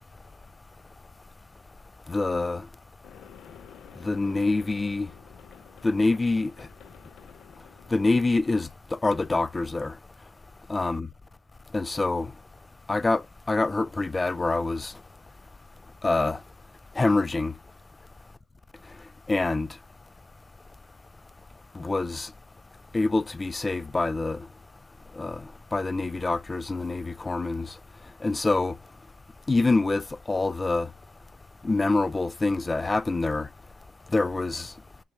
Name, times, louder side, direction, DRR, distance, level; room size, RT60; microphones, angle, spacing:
voice 1, 2.1-2.7 4.0-5.1 5.8-6.7 7.9-10.0 10.7-11.1 11.7-12.3 12.9-14.9 16.0-16.4 17.0-17.5 19.3-19.7 21.7-22.3 22.9-24.5 25.1-27.8 28.2-28.8 29.5-30.9 31.6-33.5 34.1-34.7, left 3 dB, 20° left, 0.4 m, -26 dB
sound 1, 3.0-9.0, left 9 dB, 80° left, 0.6 m, -51 dB
6.9 x 2.4 x 5.5 m
cardioid pair, 90°, 0 cm